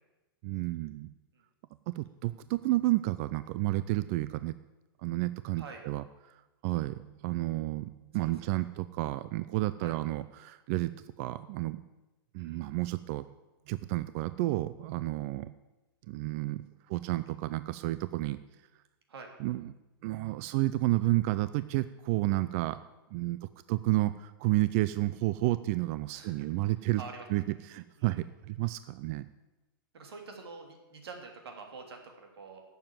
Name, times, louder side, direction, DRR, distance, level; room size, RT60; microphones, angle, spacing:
voice 1, 0.4-1.1 1.9-4.6 5.0-10.9 11.2-11.8 12.3-13.2 13.7-15.5 16.1-18.4 19.4-19.7 20.0-22.8 23.1-27.0 27.3-29.3, right 18 dB, 35° right, 14 dB, 0.4 m, -31 dB
voice 2, 8.2-8.6 9.8-10.0 12.4-12.7 19.1-19.3 26.1-26.5 27.0-27.2 28.0-28.2 29.9-32.6, right 4 dB, 85° right, 3 dB, 3.2 m, -47 dB
12.0 x 6.9 x 9.3 m, 1.1 s
hypercardioid pair, 150°, 13 cm